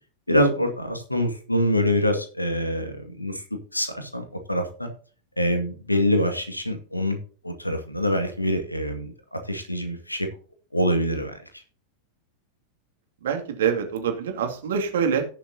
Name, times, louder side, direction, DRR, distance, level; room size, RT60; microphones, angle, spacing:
voice 1, 0.3-3.4 3.7-4.9 5.4-7.2 7.4-10.3 10.7-11.3, equal, 85° left, 6 dB, 2.1 m, -25 dB
voice 2, 13.2-15.2, right 7 dB, 60° right, 4 dB, 2.5 m, -25 dB
17.5 x 7.1 x 2.8 m, 0.41 s
figure-of-eight pair, 90°, 0 cm